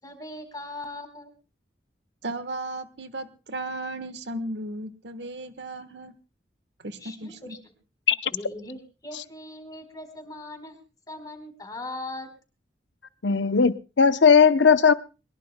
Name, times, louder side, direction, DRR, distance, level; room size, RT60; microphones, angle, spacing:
voice 1, 0.0-1.3 6.9-7.7 8.3-10.8 11.1-12.3, left 2 dB, 20° left, 4.2 m, -39 dB
voice 2, 2.2-6.1 6.8-7.6, right 2 dB, 70° right, 1.3 m, -35 dB
voice 3, 13.2-14.9, left 6 dB, 85° left, 0.8 m, -17 dB
22.5 x 21.0 x 2.2 m
head